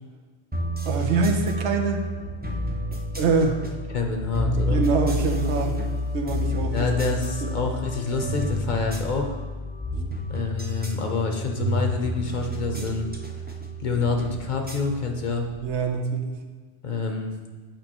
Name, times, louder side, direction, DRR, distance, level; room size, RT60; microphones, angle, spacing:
sound 1, 0.5-15.8, left 1 dB, 15° right, 0.4 m, -30 dB
voice 1, 0.9-2.0 3.2-3.6 4.7-5.8 6.1-6.9 15.6-16.3, right 4 dB, 90° right, 3 dB, 1.1 m, -24 dB
voice 2, 3.9-4.8 6.7-9.3 10.3-13.1 13.8-15.5 16.8-17.4, left 4 dB, 50° left, 3 dB, 0.7 m, -27 dB
8.8 x 5.2 x 2.9 m, 1.5 s
omnidirectional pair, 1.1 m